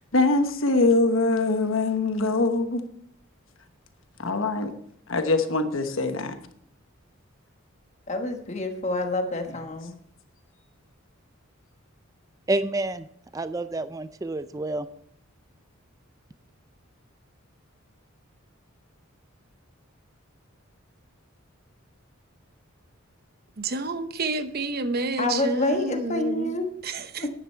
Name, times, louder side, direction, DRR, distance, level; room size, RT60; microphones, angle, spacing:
voice 1, 0.1-2.8 4.2-4.7 5.1-6.4, left 3 dB, 65° left, 1.1 m, -23 dB
voice 2, 8.1-9.9 25.2-26.7 27.2-27.3, left 2 dB, 30° left, 1.2 m, -27 dB
voice 3, 12.5-13.1 13.3-14.9, right 2 dB, 15° right, 0.3 m, -28 dB
voice 4, 23.6-26.5 26.8-27.3, right 3 dB, 45° right, 0.8 m, -29 dB
10.5 x 9.5 x 4.4 m
head